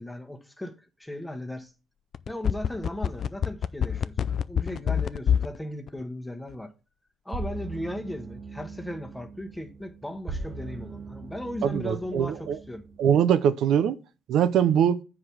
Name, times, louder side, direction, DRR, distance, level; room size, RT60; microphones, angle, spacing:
voice 1, 0.0-1.7 2.3-6.7 7.2-12.8, left 1 dB, 5° left, 1.2 m, -37 dB
sound 1, 2.1-5.6 5.9-6.0, left 8 dB, 60° left, 0.4 m, -25 dB
sound 2, 7.3-13.0, right 3 dB, 40° right, 0.8 m, -40 dB
voice 2, 11.6-12.6 13.0-14.0 14.3-15.0, right 9 dB, 80° right, 0.5 m, -22 dB
7.6 x 4.9 x 5.8 m
cardioid pair, 90°, 0 cm